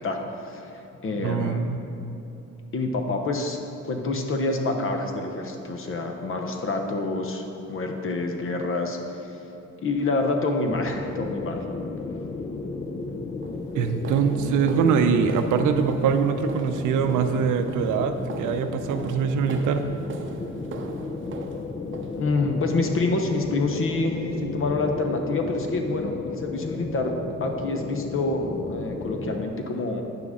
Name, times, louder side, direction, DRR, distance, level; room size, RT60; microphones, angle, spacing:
voice 1, 0.0-1.6 2.7-3.6 3.8-7.4 7.7-9.4 9.8-11.7 22.1-30.0, left 2 dB, 45° left, 4 dB, 0.9 m, -27 dB
voice 2, 1.2-1.8 13.7-19.9, right 6 dB, 80° right, 8 dB, 0.6 m, -23 dB
sound 1, 10.7-29.5, left 3 dB, 25° left, 0.4 m, -34 dB
sound 2, 12.7-12.9 13.4-22.6 23.1-23.5 23.7-23.9 24.3-24.5 24.9-25.0 25.6-25.7, right 4 dB, 40° right, 0.6 m, -40 dB
9.1 x 5.9 x 3.7 m, 2.9 s
cardioid pair, 90°, 30 cm